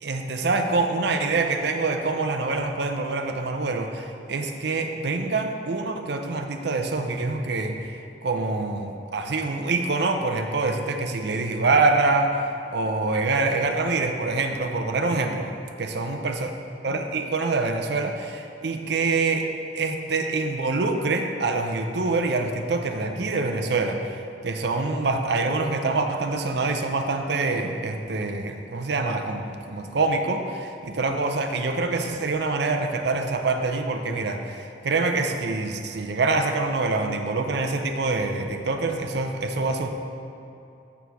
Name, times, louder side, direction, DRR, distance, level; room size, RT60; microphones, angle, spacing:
voice 1, 0.0-12.4 12.7-15.5 15.8-16.5 16.8-19.5 19.7-39.9, right 3 dB, 65° right, 5 dB, 0.6 m, -25 dB
7.0 x 6.0 x 4.7 m, 2.7 s
head